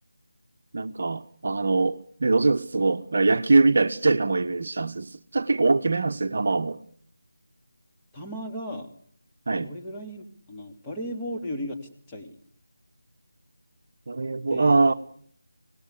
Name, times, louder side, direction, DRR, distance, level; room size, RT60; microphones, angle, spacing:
voice 1, 0.7-6.8 9.5-9.7 14.1-14.9, right 3 dB, 45° right, 9 dB, 1.1 m, -23 dB
voice 2, 8.1-8.9 9.6-12.3 14.5-14.9, equal, 10° left, -1 dB, 3.1 m, -36 dB
25.5 x 19.0 x 9.9 m, 0.65 s
figure-of-eight pair, 160°, 0 cm